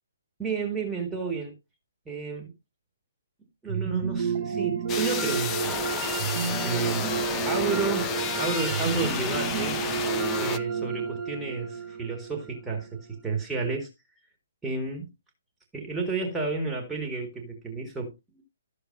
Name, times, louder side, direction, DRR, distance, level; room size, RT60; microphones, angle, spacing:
voice 1, 0.4-1.6 2.1-2.5 3.6-5.9 6.6-7.1 7.4-9.8 10.4-13.9 14.6-15.1 15.7-18.4, right 4 dB, 5° right, 1.8 m, -31 dB
sound 1, 3.7-12.8, right 7 dB, 35° right, 1.6 m, -30 dB
sound 2, 4.9-10.6, left 6 dB, 15° left, 0.6 m, -31 dB
13.0 x 6.7 x 2.6 m
figure-of-eight pair, 130°, 0 cm